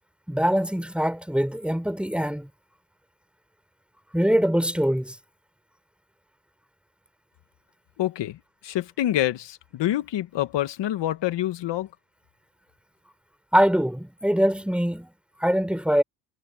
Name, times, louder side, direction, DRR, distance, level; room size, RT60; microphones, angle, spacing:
voice 1, 0.3-2.5 4.1-5.2 13.5-15.1 15.4-16.0, equal, ahead, 4.1 m, -23 dB
voice 2, 8.0-11.9, left 13 dB, 65° left, 1.8 m, -27 dB
cardioid pair, 85°, 45 cm